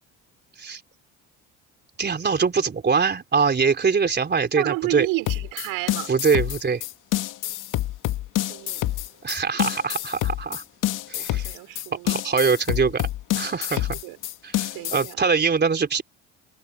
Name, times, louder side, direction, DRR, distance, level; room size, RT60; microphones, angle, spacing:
voice 1, 2.0-5.1 6.1-6.8 9.2-10.6 11.1-11.5 12.0-13.1 13.3-14.0 14.4-16.0, right 5 dB, 30° right, 3.8 m, -23 dB
voice 2, 4.6-6.1 8.4-8.9 11.1-12.2 13.7-14.2 14.7-15.2, right 22 dB, 80° right, 6.3 m, -31 dB
sound 1, 5.3-15.1, left 15 dB, 65° left, 2.4 m, -27 dB
supercardioid pair, 75°, 34 cm